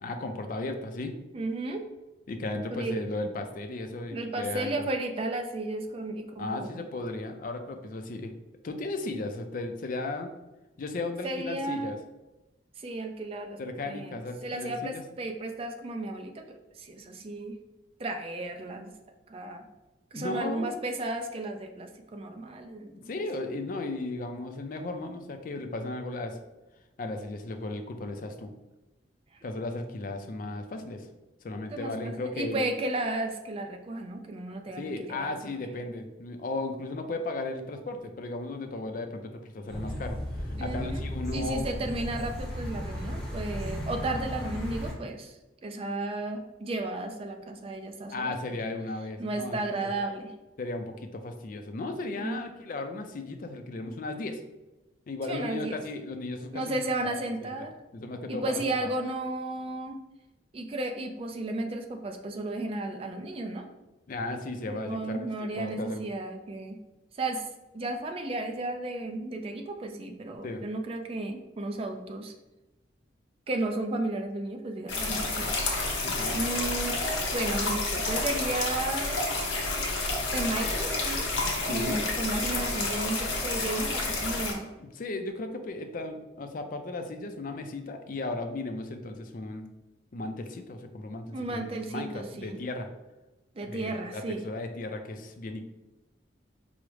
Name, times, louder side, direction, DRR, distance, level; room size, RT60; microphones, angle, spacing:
voice 1, 0.0-1.1 2.3-4.9 6.4-8.3 8.6-10.3 10.8-12.0 13.6-15.0 20.1-20.8 22.9-26.4 27.0-28.5 29.4-31.1 31.4-32.7 34.8-41.7 48.1-49.9 50.6-54.4 55.1-57.2 57.9-58.9 64.1-65.2 65.5-66.0 70.4-70.6 76.0-76.4 81.4-82.0 84.8-89.7 90.1-92.9 93.6-95.6, left 2 dB, 45° left, 6 dB, 0.4 m, -35 dB
voice 2, 1.3-1.9 2.7-3.0 4.1-6.8 11.2-12.0 12.8-16.4 16.8-17.6 18.0-18.9 19.3-19.6 20.1-23.1 31.7-35.6 40.6-41.1 41.3-45.4 45.6-48.3 49.2-50.3 52.2-52.4 55.3-55.8 56.5-57.7 58.3-60.0 60.5-63.7 64.7-66.8 67.2-67.5 67.7-72.3 73.5-75.6 76.3-77.0 77.3-79.3 80.3-81.2 81.6-84.7 91.3-92.6 93.6-94.4, right 2 dB, 30° right, 5 dB, 0.3 m, -34 dB
sound 1, 39.7-44.9, equal, ahead, 0.9 m, -35 dB
sound 2, 74.9-84.5, left 2 dB, 85° left, 0.8 m, -30 dB
4.7 x 2.0 x 3.1 m, 1.0 s
head